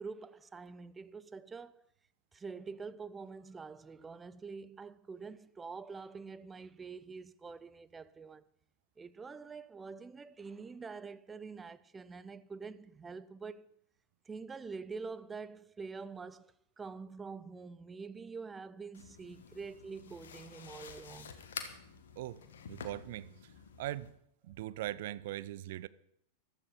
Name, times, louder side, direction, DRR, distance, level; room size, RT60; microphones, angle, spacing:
voice 1, 0.0-1.8 2.3-8.4 9.0-13.7 14.3-21.3, right 4 dB, 15° right, 0.7 m, -46 dB
sound 1, 18.9-24.1, left 7 dB, 60° left, 1.7 m, -49 dB
voice 2, 22.7-23.3 23.8-24.1 24.4-25.9, right 14 dB, 55° right, 0.6 m, -40 dB
14.5 x 12.5 x 5.6 m
figure-of-eight pair, 90°, 0 cm